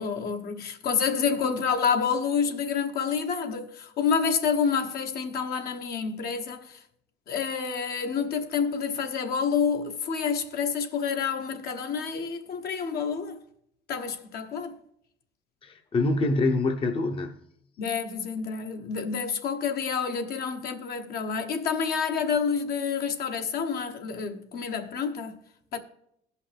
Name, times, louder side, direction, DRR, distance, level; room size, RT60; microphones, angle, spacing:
voice 1, 0.0-6.8 7.3-13.4 13.9-14.7 17.8-25.4 25.7-25.8, left 6 dB, 65° left, 1.1 m, -28 dB
voice 2, 15.6-17.4, left 2 dB, 30° left, 0.7 m, -25 dB
16.0 x 5.6 x 3.4 m
cardioid pair, 110°, 17 cm